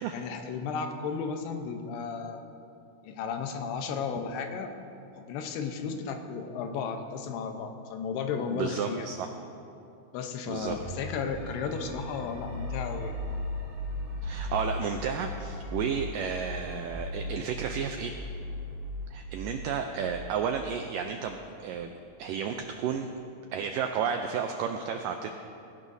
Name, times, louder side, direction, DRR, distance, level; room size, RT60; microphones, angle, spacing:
voice 1, 0.1-2.4 3.0-4.7 5.2-9.1 10.1-13.2, left 5 dB, 90° left, 5 dB, 3.0 m, -34 dB
voice 2, 8.5-9.3 10.5-10.8 14.2-18.1 19.1-21.9 22.2-23.1 23.5-25.3, right 7 dB, 85° right, 5 dB, 1.9 m, -32 dB
sound 1, 10.6-21.6, left 1 dB, 55° right, 4.1 m, -38 dB
18.0 x 16.5 x 2.7 m, 2.6 s
omnidirectional pair, 4.5 m